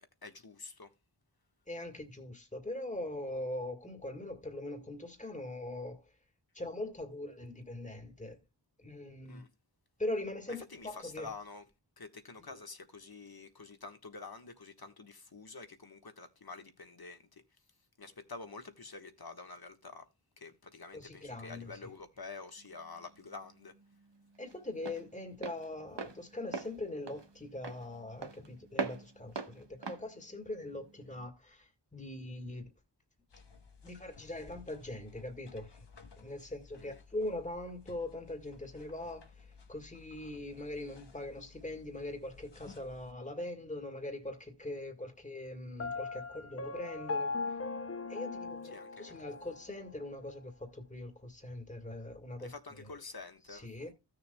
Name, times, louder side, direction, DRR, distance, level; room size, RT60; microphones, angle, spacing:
voice 1, 0.2-0.9 9.2-9.5 10.7-11.6 12.0-17.4 18.0-20.0 20.4-23.7 36.8-37.0 48.7-49.2 52.4-53.7, left 4 dB, 60° left, 1.4 m, -48 dB
voice 2, 1.7-6.1 6.5-8.4 8.8-9.4 10.0-11.3 12.5-12.6 20.9-21.8 24.4-32.7 33.8-35.9 36.2-47.6 48.1-52.9 53.5-53.9, left 1 dB, 15° left, 1.8 m, -42 dB
Walk footsteps, 22.6-31.3, right 4 dB, 80° right, 1.1 m, -43 dB
sound 1, 33.3-43.1, left 5 dB, 80° left, 1.1 m, -57 dB
Piano, 45.8-49.7, left 4 dB, 35° left, 0.5 m, -39 dB
15.5 x 6.7 x 2.2 m
wide cardioid pair, 55°, 42 cm